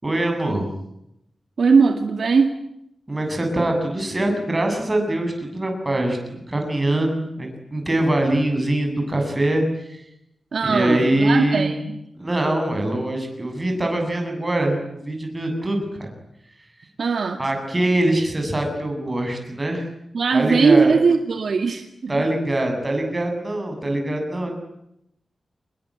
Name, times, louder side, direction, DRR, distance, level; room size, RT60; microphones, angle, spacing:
voice 1, 0.0-0.7 3.1-10.0 10.6-11.7 12.2-16.1 17.4-19.8 20.3-20.9 22.1-24.6, right 1 dB, 15° right, 3 dB, 7.9 m, -23 dB
voice 2, 1.6-2.5 10.5-11.9 17.0-17.4 20.1-22.1, right 5 dB, 55° right, 6 dB, 2.1 m, -19 dB
26.5 x 21.0 x 10.0 m, 0.80 s
wide cardioid pair, 165°, 0 cm